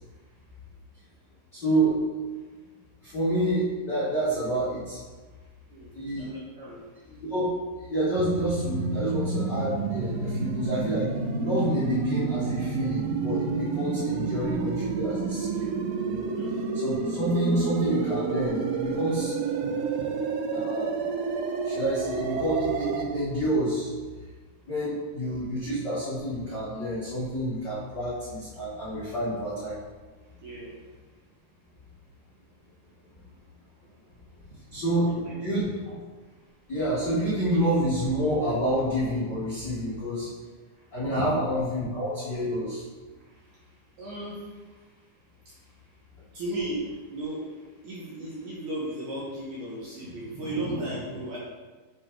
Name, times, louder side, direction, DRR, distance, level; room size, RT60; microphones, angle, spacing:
voice 1, 1.5-2.0 3.0-5.0 5.9-6.3 7.1-11.1 11.4-15.7 16.0-16.3 16.7-19.3 20.5-21.0 21.6-23.9 24.7-29.8 34.7-35.1 35.4-35.6 36.7-40.3 40.9-42.8, right 1 dB, 60° left, -10 dB, 1.1 m, -28 dB
voice 2, 5.7-6.8 16.3-16.6 19.6-19.8 20.0-20.1 30.4-30.7 35.1-36.0 41.1-41.4 43.2-43.6 44.0-44.7 45.5-45.6 46.3-47.5 47.8-51.4, right 1 dB, 70° right, -6 dB, 2.0 m, -36 dB
sound 1, 8.1-23.0, right 5 dB, 90° right, 2.8 m, -29 dB
6.3 x 4.2 x 4.6 m, 1.3 s
omnidirectional pair, 4.7 m